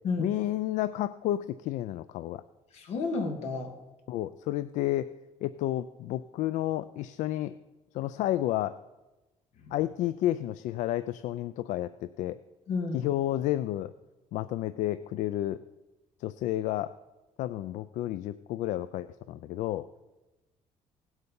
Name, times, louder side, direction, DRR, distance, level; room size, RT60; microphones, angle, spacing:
voice 1, 0.2-2.4 4.1-5.1 5.4-7.5 7.9-8.8 9.7-12.4 12.9-13.9 14.3-15.6 16.2-16.9 17.4-19.9, left 13 dB, 80° left, 14 dB, 0.4 m, -31 dB
voice 2, 2.7-3.7 9.7-9.8 12.7-13.0, left 3 dB, 60° left, 4 dB, 2.0 m, -31 dB
17.5 x 8.0 x 5.4 m, 1.1 s
cardioid pair, 170°, 12 cm